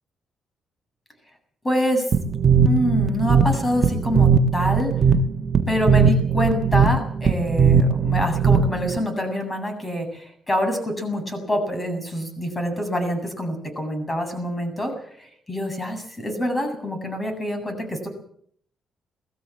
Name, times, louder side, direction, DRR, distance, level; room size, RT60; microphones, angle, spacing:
voice 1, 1.6-2.0 2.6-4.9 5.7-18.1, equal, 20° left, 6 dB, 7.9 m, -26 dB
sound 1, 2.1-9.0, right 6 dB, 45° right, 1.5 m, -19 dB
21.0 x 16.5 x 7.5 m, 0.63 s
cardioid pair, 90°, 0 cm